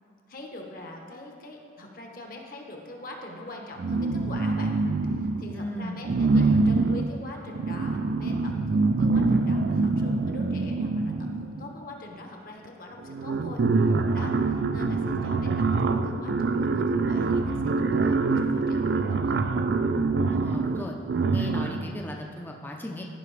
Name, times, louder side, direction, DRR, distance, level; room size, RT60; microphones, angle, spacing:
voice 1, 0.3-4.8 5.1-19.4, left 2 dB, 50° left, 1 dB, 1.0 m, -43 dB
sound 1, 3.8-5.6 6.0-11.7 12.7-12.8 13.0-21.9, right 3 dB, 65° right, 0.4 m, -25 dB
voice 2, 5.5-6.6 20.3-21.0 21.3-23.1, left 1 dB, 10° left, 1 dB, 0.5 m, -37 dB
14.5 x 5.6 x 3.3 m, 2.2 s
head